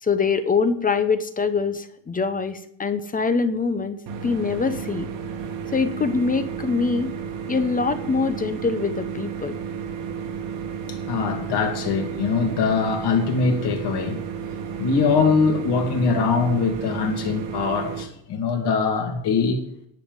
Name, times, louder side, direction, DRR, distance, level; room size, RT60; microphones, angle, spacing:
voice 1, 0.0-5.1 5.7-7.1 7.5-9.6, left 4 dB, 20° left, 0.7 m, -24 dB
sound 1, 4.1-18.0, right 7 dB, 90° right, 2.5 m, -32 dB
voice 2, 10.9-14.2 14.8-19.6, left 5 dB, 55° left, 2.6 m, -22 dB
10.5 x 7.2 x 9.5 m
cardioid pair, 155°, 47 cm